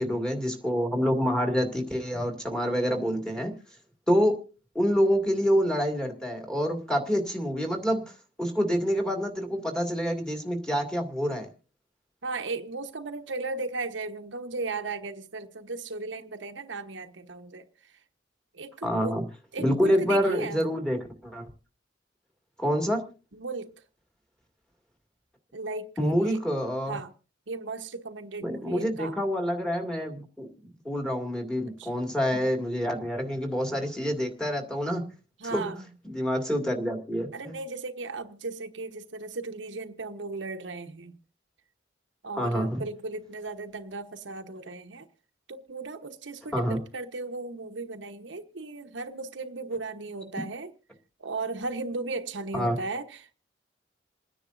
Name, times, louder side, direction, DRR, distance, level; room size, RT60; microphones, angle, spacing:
voice 1, 0.0-3.5 4.1-4.4 4.7-8.0 8.4-11.5 18.8-19.2 19.6-21.5 22.6-23.0 26.0-27.0 28.4-35.0 35.5-35.6 36.0-37.5 42.4-42.8 46.5-46.8 52.5-52.8, equal, 5° left, 2.2 m, -27 dB
voice 2, 12.2-17.7 18.5-19.2 19.5-20.6 23.3-23.7 25.5-26.4 26.9-27.1 27.5-29.1 31.8-31.9 35.4-35.8 37.3-41.1 42.2-45.1 45.5-50.7 51.2-53.3, right 3 dB, 75° right, 1.1 m, -36 dB
28.0 x 10.0 x 2.6 m
head